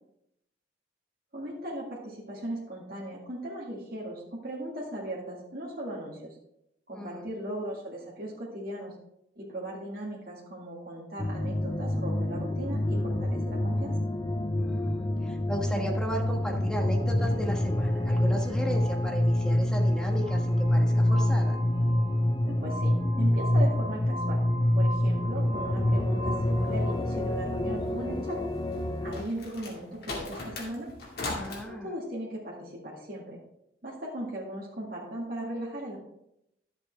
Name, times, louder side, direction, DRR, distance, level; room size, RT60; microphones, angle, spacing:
voice 1, 1.3-6.3 6.9-8.9 9.4-14.0 22.4-24.4 24.7-28.4 29.0-30.9 31.7-33.4 33.8-36.0, right 1 dB, 55° right, -4 dB, 2.0 m, -38 dB
voice 2, 6.9-7.3 14.6-21.6 31.3-31.9, equal, 5° left, 0 dB, 1.3 m, -36 dB
sound 1, 11.2-29.2, left 1 dB, 25° left, 0.5 m, -26 dB
Glass, 20.2-26.9, right 2 dB, 40° left, 2.2 m, -41 dB
sound 2, 28.7-31.6, left 2 dB, 60° left, 2.2 m, -38 dB
11.5 x 7.4 x 3.3 m, 0.80 s
head